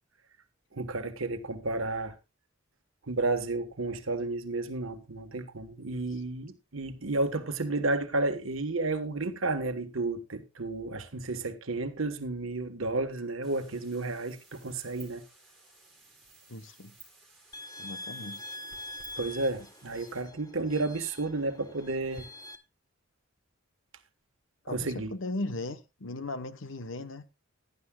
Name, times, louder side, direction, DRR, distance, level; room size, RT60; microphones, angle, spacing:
voice 1, 0.7-2.1 3.1-15.2 19.2-22.3 24.7-25.1, right 2 dB, 75° right, 1.3 m, -32 dB
sound 1, 13.4-20.2, right 3 dB, ahead, 5.1 m, -56 dB
voice 2, 16.5-16.9 17.8-18.4 24.6-27.2, left 2 dB, 65° left, 1.0 m, -37 dB
sound 2, 17.5-22.6, left 2 dB, 20° left, 0.9 m, -44 dB
16.0 x 11.0 x 2.3 m
head